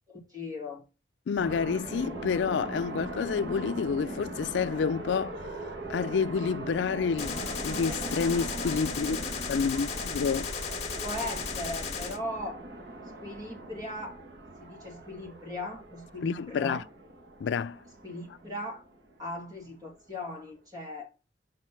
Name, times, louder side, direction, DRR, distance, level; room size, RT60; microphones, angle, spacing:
voice 1, 0.1-0.8 11.0-12.6 13.2-14.2 14.6-16.9 18.0-18.8 19.2-21.1, left 1 dB, 20° right, 2.3 m, -38 dB
voice 2, 1.3-5.4 5.9-9.2 9.5-10.5 16.2-16.8 17.4-17.8, left 5 dB, 90° left, 0.4 m, -29 dB
sound 1, 1.4-19.7, right 2 dB, 70° right, 1.3 m, -40 dB
Gunshot gunfire, 7.2-12.2, left 5 dB, 35° left, 1.6 m, -35 dB
6.4 x 4.1 x 5.8 m
head